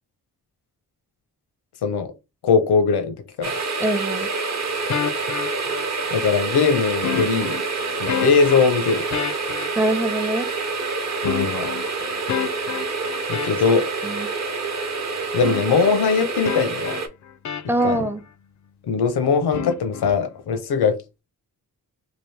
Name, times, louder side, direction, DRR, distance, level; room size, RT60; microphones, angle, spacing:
voice 1, 1.8-2.1 2.4-3.5 6.1-7.6 8.0-9.0 11.2-11.7 13.3-13.9 15.3-17.0 17.8-18.0 18.9-20.9, left 5 dB, 85° left, 0.7 m, -20 dB
sound 1, 3.4-17.1, right 4 dB, 45° right, 0.8 m, -27 dB
voice 2, 3.8-4.3 9.8-10.5 14.0-14.3 17.7-18.2, right 1 dB, 5° right, 0.5 m, -23 dB
sound 2, 4.9-6.2 7.0-10.1 11.2-13.9 15.4-16.0 16.4-18.0 19.5-20.1, left 8 dB, 50° left, 0.4 m, -30 dB
3.0 x 2.5 x 3.2 m
cardioid pair, 60°, 38 cm